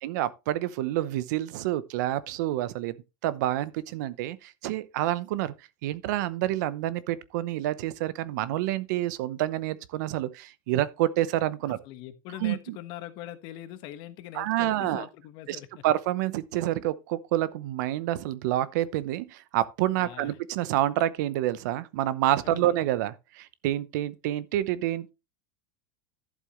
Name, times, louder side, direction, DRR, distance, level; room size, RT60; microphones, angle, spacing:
voice 1, 0.0-3.0 3.2-5.5 5.8-11.8 12.4-12.8 14.3-15.1 15.5-25.1, right 14 dB, 75° right, 0.8 m, -28 dB
voice 2, 11.6-15.9 19.9-20.4 22.4-22.7, left 13 dB, 55° left, 1.3 m, -42 dB
12.0 x 7.5 x 3.1 m
supercardioid pair, 140°, 10 cm